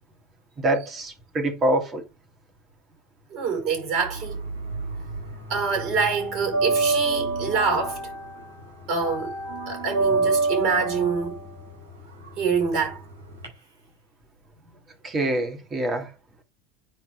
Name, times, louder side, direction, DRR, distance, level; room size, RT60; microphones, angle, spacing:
voice 1, 0.6-2.0 15.0-16.1, right 1 dB, 30° right, 3.0 m, -25 dB
voice 2, 3.3-4.4 5.5-8.0 8.9-9.4 9.7-11.5 12.4-13.0, right 5 dB, 50° right, 5.3 m, -25 dB
sound 1, 4.2-5.3 5.5-13.5, right 3 dB, 75° right, 4.8 m, -27 dB
9.4 x 4.7 x 3.7 m
figure-of-eight pair, 75°, 0 cm